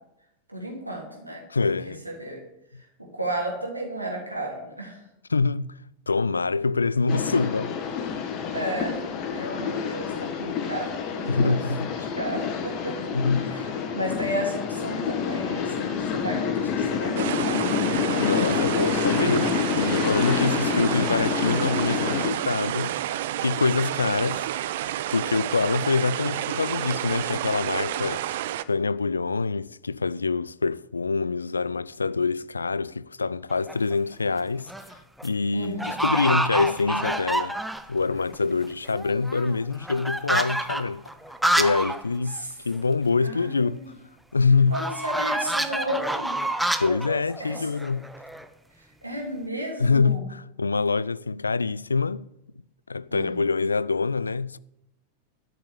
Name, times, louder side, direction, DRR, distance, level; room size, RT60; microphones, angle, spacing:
voice 1, 0.5-1.4 2.0-2.4 3.0-5.0 8.5-9.0 9.3-17.6 20.5-20.7 35.5-36.0 42.3-42.5 43.2-43.9 44.7-46.3 47.4-47.7 48.8-50.3 53.1-53.4, right 1 dB, 85° right, 3.3 m, -33 dB
voice 2, 1.5-2.0 5.3-5.8 6.1-7.8 11.3-11.9 13.1-13.4 18.2-23.0 23.4-24.4 25.1-28.2 28.7-34.7 35.2-37.6 37.9-41.0 41.6-42.4 42.6-43.8 44.3-44.8 46.8-48.1 49.8-52.3 52.9-54.6, left 4 dB, 75° left, 0.3 m, -25 dB
sound 1, 7.1-22.3, left 6 dB, 40° left, 1.6 m, -28 dB
sound 2, 17.2-28.6, right 12 dB, 55° right, 0.6 m, -30 dB
sound 3, 33.5-33.9 34.5-34.9 35.2-35.3 35.8-38.0 38.3-38.4 38.6-42.0 42.3-42.4 42.7-42.8 44.7-48.5, right 1 dB, ahead, 0.8 m, -28 dB
12.5 x 6.7 x 8.5 m
figure-of-eight pair, 90°, 0 cm